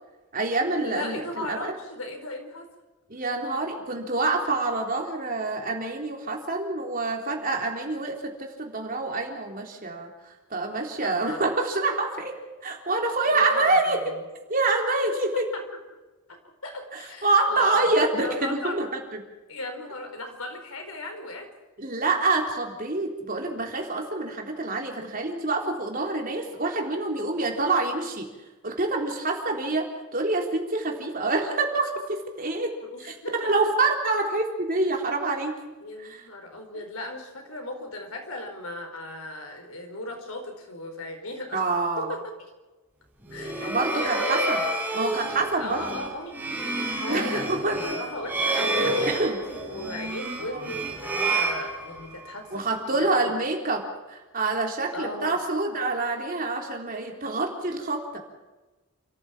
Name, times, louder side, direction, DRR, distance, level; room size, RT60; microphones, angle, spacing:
voice 1, 0.3-1.7 3.1-10.1 10.5-12.4 12.6-14.1 14.5-15.5 16.9-18.9 19.1-19.2 21.8-28.3 28.6-32.7 33.0-35.6 36.0-36.2 41.5-42.1 43.6-44.6 44.9-45.8 47.1-47.8 48.8-49.4 50.5-50.6 52.5-58.2, right 3 dB, 40° right, 2 dB, 3.7 m, -26 dB
voice 2, 0.8-2.7 11.0-11.5 13.2-14.2 16.3-19.0 19.5-21.5 32.8-33.7 35.8-41.6 42.0-42.2 43.3-45.0 45.6-46.4 47.0-53.4 54.9-55.4, left 2 dB, 90° left, 4 dB, 4.9 m, -37 dB
sound 1, 43.2-52.3, right 2 dB, 10° right, 6.1 m, -29 dB
29.0 x 14.5 x 7.3 m, 1.1 s
head